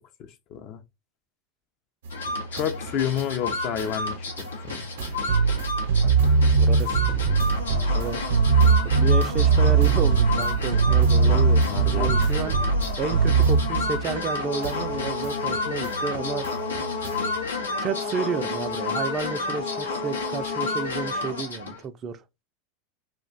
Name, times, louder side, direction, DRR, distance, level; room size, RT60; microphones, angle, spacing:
voice 1, 0.5-0.8 2.5-4.3 4.6-4.8 11.1-12.1, left 9 dB, 50° left, 0.5 m, -30 dB
sound 1, 2.0-14.3 14.6-17.4, right 5 dB, 75° right, 0.7 m, -22 dB
sound 2, 2.1-21.8, left 3 dB, 90° left, 0.6 m, -31 dB
voice 2, 6.0-7.4 7.9-8.2 9.0-12.6 13.0-16.5 16.8-16.9 17.8-22.2, right 5 dB, 35° right, 0.4 m, -31 dB
2.4 x 2.1 x 3.9 m
hypercardioid pair, 90°, 0 cm